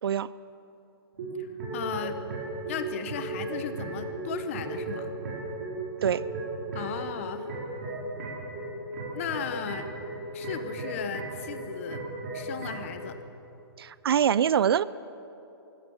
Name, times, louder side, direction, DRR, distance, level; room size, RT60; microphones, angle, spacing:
sound 1, 1.1-12.9, right 2 dB, 40° right, 6.0 m, -36 dB
voice 1, 1.7-2.2 2.7-5.1 6.7-7.5 9.1-9.9 10.3-12.1 12.3-13.1, left 8 dB, 30° left, 10 dB, 1.0 m, -36 dB
voice 2, 13.8-14.8, right 9 dB, 70° right, 19 dB, 0.6 m, -24 dB
23.5 x 16.0 x 7.2 m, 2.9 s
hypercardioid pair, 175°, 13 cm